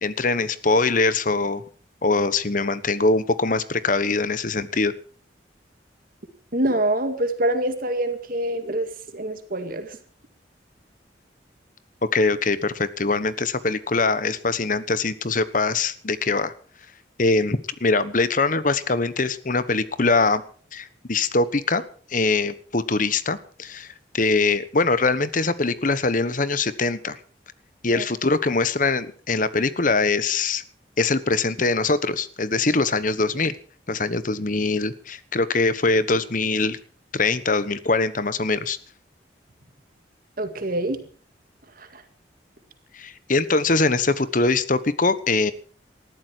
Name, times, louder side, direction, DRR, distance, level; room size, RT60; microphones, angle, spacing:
voice 1, 0.0-1.6 2.0-4.9 12.1-16.5 17.2-20.4 20.7-21.8 22.1-27.2 27.8-30.6 31.0-33.5 33.9-36.8 37.1-38.8 42.9-45.5, left 3 dB, 45° left, 15 dB, 1.2 m, -22 dB
voice 2, 6.5-10.0 27.9-28.1 40.4-41.0 41.8-42.0, right 1 dB, 50° right, 8 dB, 2.1 m, -25 dB
19.5 x 14.0 x 4.6 m, 0.42 s
head